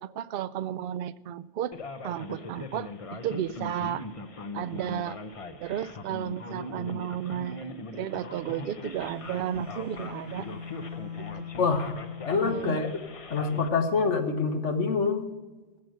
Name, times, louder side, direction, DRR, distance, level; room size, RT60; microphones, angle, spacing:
voice 1, 0.0-1.7 2.0-4.1 4.5-5.2 5.6-7.7 7.9-10.5 11.2-11.5 12.4-12.8, right 10 dB, 60° right, 15 dB, 0.6 m, -33 dB
Male speech man speaking, 1.7-13.7, left 2 dB, 35° left, 0.7 m, -41 dB
Bowed string instrument, 8.8-12.6, left 7 dB, 60° left, 4.5 m, -42 dB
voice 2, 11.6-11.9 12.2-12.9 13.3-15.3, left 4 dB, 90° left, 6 dB, 1.6 m, -26 dB
15.5 x 7.6 x 6.4 m, 1.2 s
omnidirectional pair, 1.2 m